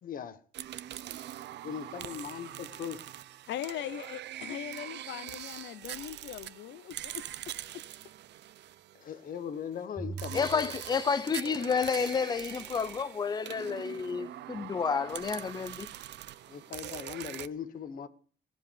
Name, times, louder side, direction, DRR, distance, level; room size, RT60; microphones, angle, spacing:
voice 1, 0.0-0.4 1.6-3.0 8.9-10.8 16.5-18.1, left 8 dB, 45° left, 1.2 m, -39 dB
sound 1, 0.5-9.4 10.2-17.5, right 12 dB, 65° right, 0.6 m, -43 dB
voice 2, 3.5-7.2 7.7-7.8, left 12 dB, 70° left, 0.7 m, -40 dB
sound 2, 10.0-11.7, right 4 dB, 5° right, 4.3 m, -43 dB
voice 3, 10.3-15.9, left 6 dB, 20° left, 0.5 m, -30 dB
16.0 x 7.6 x 6.9 m
cardioid pair, 180°, 19 cm